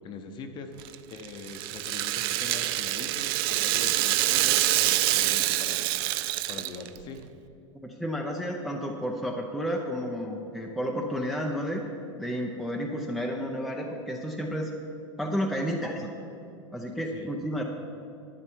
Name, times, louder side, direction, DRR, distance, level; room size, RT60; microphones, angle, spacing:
voice 1, 0.0-5.8 6.5-7.4 17.1-17.3, left 4 dB, 30° left, 7 dB, 0.9 m, -42 dB
Rattle (instrument), 0.8-7.0, right 16 dB, 50° right, 0.4 m, -26 dB
voice 2, 7.8-11.8 12.2-14.7 15.2-16.1 16.7-17.6, equal, ahead, 0 dB, 0.6 m, -31 dB
11.0 x 9.5 x 4.6 m, 2.7 s
supercardioid pair, 140°, 16 cm